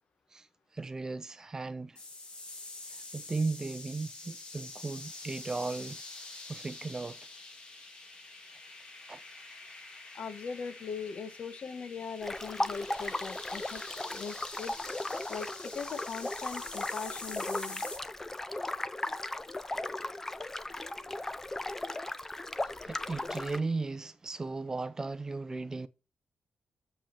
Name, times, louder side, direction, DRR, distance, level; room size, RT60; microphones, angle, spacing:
voice 1, 0.7-2.0 2.9-6.0 6.5-7.2 9.1-9.2 22.8-25.9, right 3 dB, 25° right, 0.6 m, -36 dB
sound 1, 2.0-18.0, left 3 dB, 40° left, 2.8 m, -46 dB
voice 2, 10.1-13.8 14.1-14.7 15.3-17.9, left 5 dB, 60° left, 1.2 m, -40 dB
sound 2, 12.2-23.6, left 2 dB, 15° left, 0.6 m, -37 dB
7.4 x 5.4 x 5.7 m
cardioid pair, 115°, 2 cm